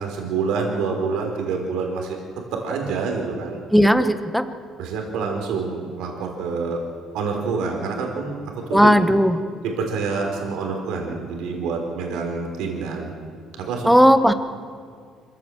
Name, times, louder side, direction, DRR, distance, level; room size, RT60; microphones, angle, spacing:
voice 1, 0.0-2.2 2.5-3.6 4.8-6.8 7.1-8.9 9.6-13.1 13.5-14.0, right 4 dB, 85° right, 1 dB, 3.8 m, -27 dB
voice 2, 3.7-4.4 8.7-9.4 13.8-14.3, equal, ahead, 10 dB, 1.0 m, -15 dB
26.0 x 15.5 x 7.8 m, 2.1 s
cardioid pair, 145°, 0 cm